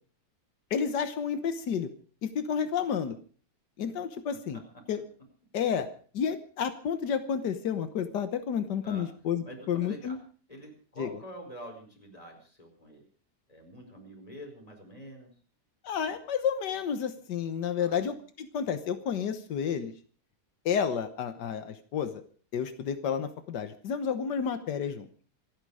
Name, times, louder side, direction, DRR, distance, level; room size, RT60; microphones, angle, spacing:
voice 1, 0.7-1.9 2.2-3.2 3.8-4.6 4.9-5.0 5.5-5.9 6.1-10.2 11.0-11.1 15.8-19.9 20.7-22.2 22.5-25.1, left 7 dB, 90° left, 10 dB, 1.7 m, -31 dB
voice 2, 9.4-10.2 10.5-13.0 13.5-15.3 17.8-18.0, equal, 20° left, 2 dB, 5.0 m, -46 dB
26.5 x 9.9 x 4.9 m, 0.42 s
omnidirectional pair, 1.8 m